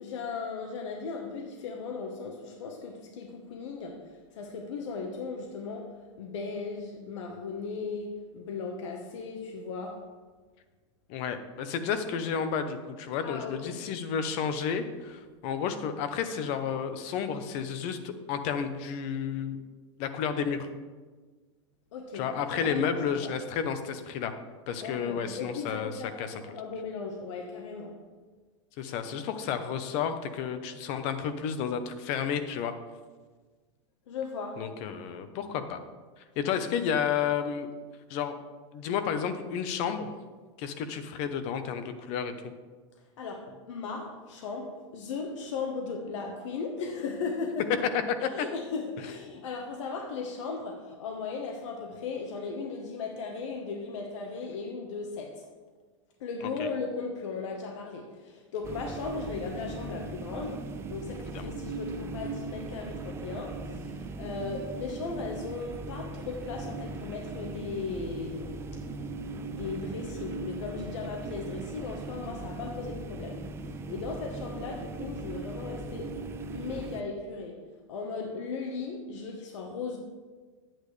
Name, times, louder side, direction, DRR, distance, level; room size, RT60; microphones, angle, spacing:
voice 1, 0.0-10.1 13.2-13.8 21.9-23.3 24.8-28.0 34.1-34.7 43.2-47.8 48.2-55.5 56.2-68.7 69.5-76.2 76.5-80.0, left 4 dB, 75° left, 1.2 m, -37 dB
voice 2, 11.1-19.6 20.0-20.7 22.1-24.3 24.7-25.9 26.2-26.3 28.8-32.7 34.6-35.8 36.4-37.7 38.1-38.4 38.7-40.1 40.6-42.3 56.6-56.7 61.3-61.5, left 7 dB, 45° left, 0.9 m, -31 dB
sound 1, 58.6-77.0, right 3 dB, 15° right, 0.4 m, -39 dB
10.5 x 8.9 x 3.3 m
supercardioid pair, 150°, 16 cm